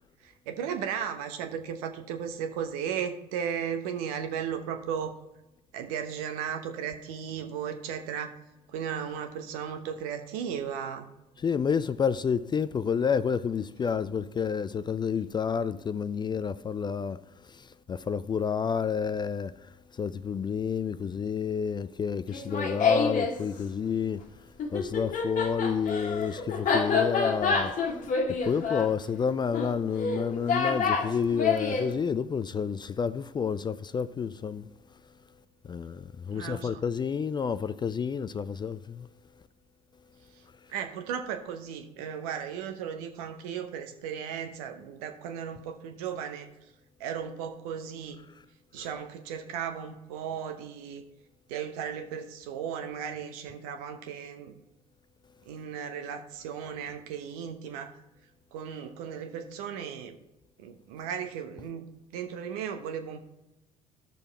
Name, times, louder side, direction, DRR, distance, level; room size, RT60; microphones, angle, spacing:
voice 1, 0.2-5.2 5.7-8.3 8.7-11.1 36.3-36.8 40.7-46.5 47.0-48.2 48.7-51.0 51.5-54.6 55.5-57.9 58.5-60.2 60.6-63.3, right 8 dB, 65° right, 1.0 m, -35 dB
voice 2, 11.4-19.5 19.9-24.2 24.7-27.7 28.3-34.7 35.6-39.1 48.8-48.9, left 6 dB, 20° left, 0.4 m, -30 dB
Laughter, 22.3-23.4 24.6-31.9, left 4 dB, 40° left, 1.5 m, -28 dB
13.0 x 6.8 x 4.2 m
figure-of-eight pair, 55°, 20 cm